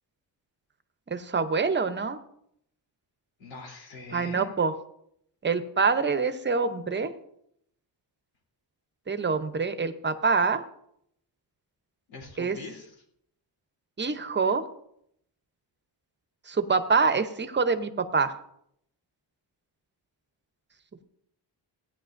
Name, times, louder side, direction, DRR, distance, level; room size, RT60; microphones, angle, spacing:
voice 1, 1.1-2.2 4.1-4.7 5.4-7.1 9.1-10.6 12.4-12.6 14.0-14.6 16.5-18.4, right 4 dB, 25° right, 9 dB, 0.7 m, -25 dB
voice 2, 3.4-4.5 12.1-13.0, left 3 dB, 85° left, 0 dB, 3.4 m, -43 dB
16.5 x 9.9 x 2.6 m, 0.73 s
wide cardioid pair, 130°, 45 cm